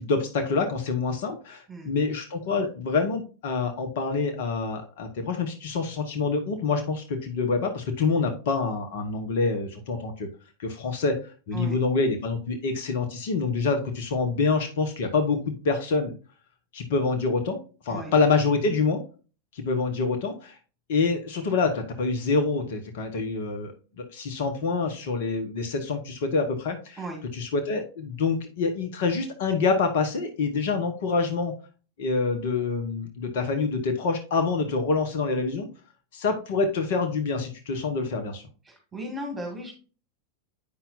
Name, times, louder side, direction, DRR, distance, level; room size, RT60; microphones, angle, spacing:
voice 1, 0.0-10.3 10.6-16.1 16.7-19.0 19.5-20.6 20.9-27.0 27.3-31.5 32.0-35.7 36.1-38.4, left 4 dB, 55° left, 6 dB, 1.0 m, -26 dB
voice 2, 38.7-39.7, right 1 dB, 10° right, 2 dB, 2.1 m, -36 dB
8.5 x 5.7 x 2.5 m, 0.36 s
figure-of-eight pair, 90°, 0 cm